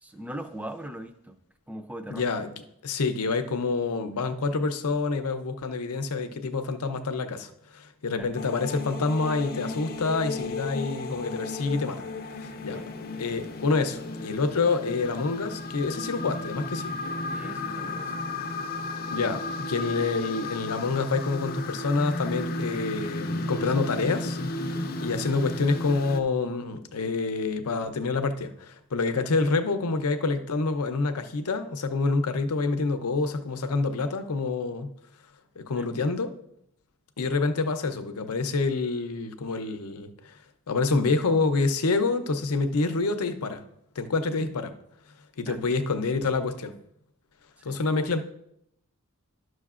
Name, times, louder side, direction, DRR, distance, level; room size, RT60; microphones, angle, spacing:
voice 1, 0.0-1.4 1.7-2.2 8.1-8.3 12.7-12.9 17.3-18.2 35.8-35.9 45.5-45.7 47.6-47.8, right 1 dB, 5° right, 7 dB, 0.4 m, -40 dB
voice 2, 2.1-2.5 2.8-12.1 12.4-12.8 13.2-16.9 19.1-34.9 35.6-36.3 37.2-40.3 40.7-43.6 44.0-44.7 45.4-46.7 47.6-48.2, left 3 dB, 85° left, 8 dB, 0.6 m, -27 dB
sound 1, 8.3-26.2, left 2 dB, 45° left, 0.5 m, -34 dB
11.5 x 6.3 x 2.4 m, 0.75 s
head